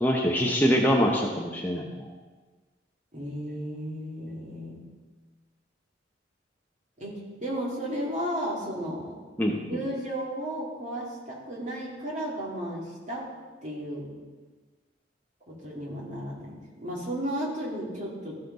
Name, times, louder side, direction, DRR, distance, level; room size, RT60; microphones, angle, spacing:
voice 1, 0.0-2.1 9.4-9.8, equal, 10° left, -1 dB, 0.7 m, -24 dB
voice 2, 3.1-4.8 7.0-9.1 9.7-13.3 13.6-14.1 15.5-18.4, equal, 40° right, -4 dB, 2.4 m, -34 dB
14.5 x 5.7 x 4.0 m, 1.3 s
head